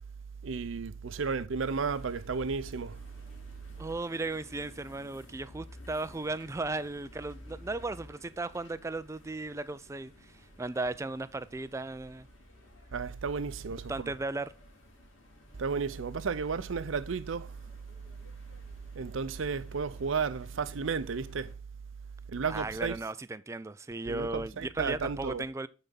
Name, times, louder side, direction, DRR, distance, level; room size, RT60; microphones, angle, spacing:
voice 1, 0.4-3.0 12.9-14.1 15.6-17.6 18.9-21.5 22.3-23.0 24.1-25.4, right 5 dB, 70° right, 0.6 m, -33 dB
sound 1, 1.7-21.6, equal, 75° left, 2.4 m, -53 dB
voice 2, 3.8-12.3 13.9-14.5 22.5-25.7, right 2 dB, 15° right, 0.3 m, -36 dB
9.1 x 4.1 x 3.8 m
head